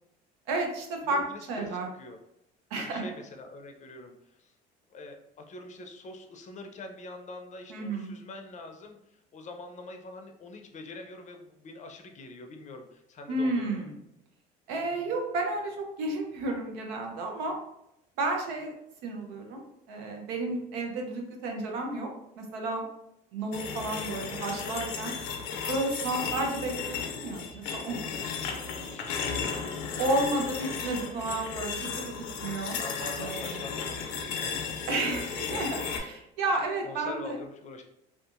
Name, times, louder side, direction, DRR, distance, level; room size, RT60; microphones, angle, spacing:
voice 1, 0.5-1.2 1.5-1.9 2.7-3.1 7.7-8.1 13.3-14.0 14.7-17.6 18.2-18.7 19.0-19.6 19.9-22.1 22.4-22.8 23.3-25.1 25.7-28.0 30.0-32.8 33.2-33.6 34.9-37.4, right 2 dB, 85° right, 2 dB, 0.7 m, -32 dB
voice 2, 1.1-2.2 2.8-4.5 4.9-13.9 23.9-24.5 27.9-29.7 32.8-34.9 36.8-37.8, left 2 dB, 35° left, 4 dB, 0.5 m, -45 dB
sound 1, 23.5-36.0, left 6 dB, 85° left, 0.5 m, -35 dB
2.6 x 2.4 x 2.4 m, 0.84 s
supercardioid pair, 85°, 20 cm